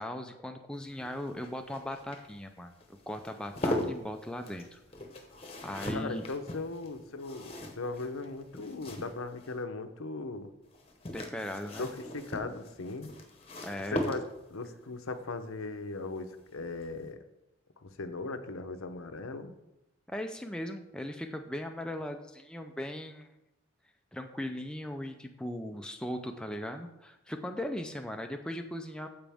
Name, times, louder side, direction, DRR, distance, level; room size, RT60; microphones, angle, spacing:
voice 1, 0.0-4.8 5.6-6.2 11.1-11.9 13.6-14.1 20.1-23.3 24.1-29.1, left 1 dB, 5° left, 4 dB, 0.5 m, -38 dB
sound 1, 0.8-9.6 10.7-14.6 16.2-16.6 16.8-16.9, left 1 dB, 30° left, 1.0 m, -39 dB
voice 2, 5.9-10.5 11.8-13.1 13.9-17.2 17.8-19.5, left 3 dB, 85° left, 8 dB, 0.8 m, -38 dB
14.5 x 5.1 x 3.5 m, 0.90 s
head